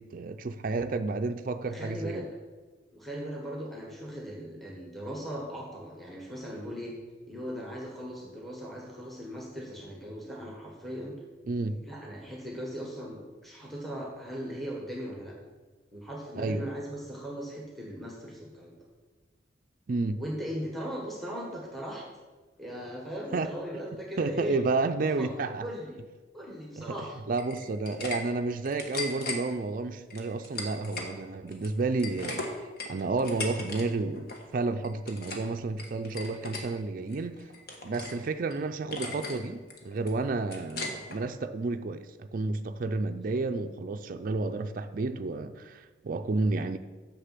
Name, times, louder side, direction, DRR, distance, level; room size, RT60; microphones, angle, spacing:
voice 1, 0.0-2.3 11.5-11.8 16.4-16.7 19.9-20.2 23.3-23.5 24.2-25.7 26.8-27.0 27.3-32.5 32.9-37.4 37.8-46.8, right 3 dB, 45° right, 7 dB, 0.4 m, -31 dB
voice 2, 1.6-2.3 2.9-7.0 7.3-11.2 11.8-15.3 15.9-18.8 20.2-22.1 22.6-24.6 25.0-26.0 26.3-27.2, equal, ahead, -3 dB, 1.3 m, -38 dB
sound 1, 27.3-28.2 28.5-29.4 30.1-31.1 31.5-33.8 34.1-34.4 34.8-35.5 35.8-36.6 37.1-38.2 38.5-38.6 38.9-39.4 39.7-41.2, left 3 dB, 55° left, 1.3 m, -37 dB
6.7 x 5.9 x 7.4 m, 1.3 s
head